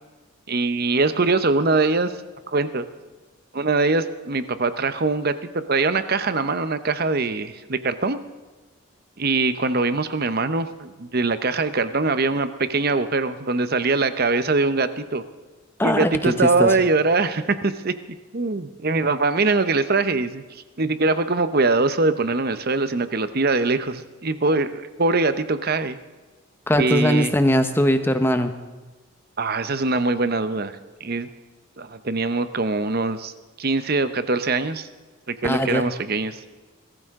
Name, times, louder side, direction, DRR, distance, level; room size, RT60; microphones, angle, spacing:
voice 1, 0.5-2.1 2.5-2.9 3.5-8.2 9.2-15.2 15.8-17.9 18.3-26.0 26.8-27.3 29.4-30.7 31.0-31.3 31.8-33.3 33.6-34.9 35.3-36.4, right 3 dB, 45° right, 11 dB, 0.8 m, -22 dB
voice 2, 15.8-16.7 26.7-28.5 35.4-35.9, equal, 10° left, 8 dB, 0.9 m, -20 dB
22.0 x 14.0 x 3.7 m, 1.3 s
head